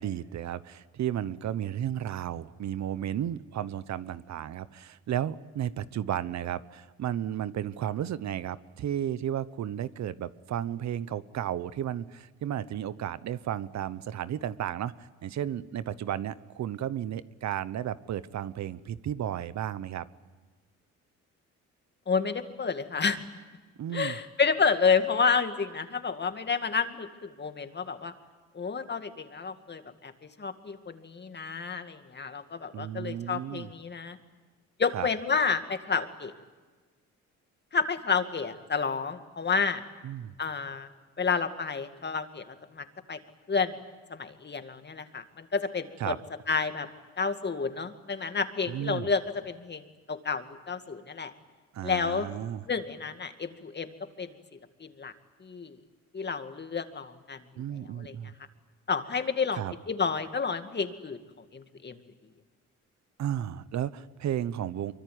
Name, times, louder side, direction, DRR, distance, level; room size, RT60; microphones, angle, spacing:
voice 1, 0.0-20.0 23.8-24.2 32.7-33.7 34.9-35.1 40.0-40.3 46.0-46.2 48.7-49.1 51.7-52.6 57.6-58.3 59.5-59.7 63.2-64.9, right 10 dB, 65° right, 16 dB, 1.0 m, -33 dB
voice 2, 22.1-23.2 23.9-28.1 28.5-30.1 30.4-34.2 34.8-36.3 37.7-39.8 40.4-40.9 41.2-43.2 43.5-43.8 44.1-46.2 46.5-46.9 47.2-51.3 51.8-52.3 52.7-54.3 54.8-55.1 55.4-55.8 56.1-57.4 57.7-58.1 58.9-61.2 61.5-62.0, left 5 dB, 35° left, 8 dB, 2.3 m, -30 dB
24.5 x 24.0 x 9.5 m, 1.3 s
cardioid pair, 90°, 30 cm